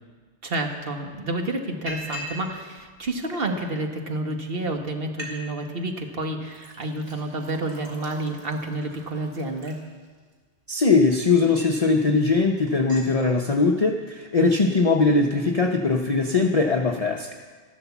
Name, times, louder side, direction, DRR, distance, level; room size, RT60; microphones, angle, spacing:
voice 1, 0.4-9.8, right 2 dB, 55° right, 4 dB, 1.6 m, -29 dB
Liquid, 0.7-0.8 1.1-1.4 1.9-2.5 2.8-3.7 4.3-4.4 4.7-4.8 5.0-5.3 5.6-6.0 6.5-10.3 10.9-11.9 12.3-12.4 12.7-13.1, equal, 85° right, 3.2 m, -41 dB
voice 2, 10.7-17.3, left 3 dB, 35° left, 2 dB, 0.8 m, -21 dB
13.0 x 12.0 x 7.2 m, 1.5 s
omnidirectional pair, 1.1 m